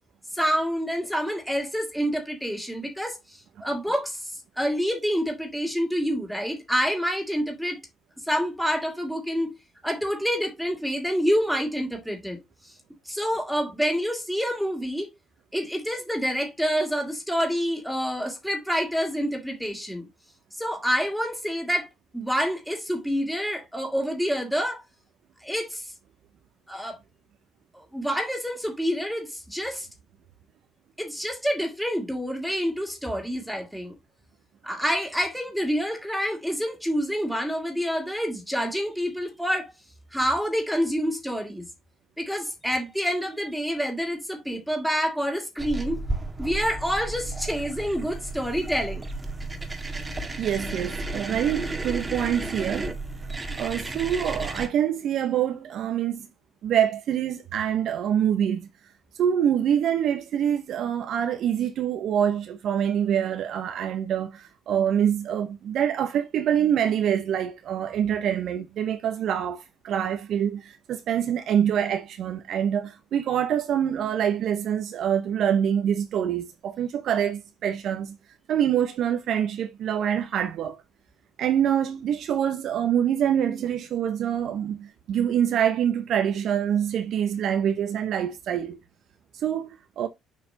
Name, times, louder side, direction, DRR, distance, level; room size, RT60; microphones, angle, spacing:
voice 1, 0.3-4.3 4.6-7.8 8.3-9.5 9.8-12.4 13.1-15.1 15.5-20.1 20.6-21.9 22.1-24.8 25.4-25.9 26.7-27.0 27.7-29.9 31.0-34.0 34.6-39.7 40.1-41.7 42.2-46.0 46.4-49.1, equal, ahead, 2.5 m, -27 dB
sound 1, 45.6-54.7, right 2 dB, 20° right, 1.6 m, -33 dB
voice 2, 50.4-52.9 53.5-56.3 56.6-58.7 59.2-78.2 78.5-80.8 81.4-88.8 89.3-89.7 90.0-90.1, right 9 dB, 60° right, 0.9 m, -25 dB
7.1 x 5.2 x 2.8 m
hypercardioid pair, 55°, 0 cm